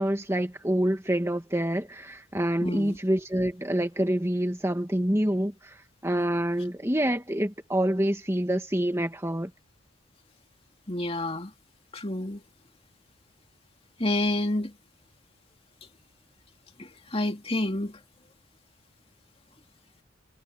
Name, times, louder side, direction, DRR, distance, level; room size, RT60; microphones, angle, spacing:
voice 1, 0.0-9.5, right 1 dB, 15° right, 2.1 m, -27 dB
voice 2, 2.6-3.0 10.9-11.5 11.9-12.4 14.0-14.7 16.8-18.0, left 1 dB, 30° left, 2.6 m, -29 dB
head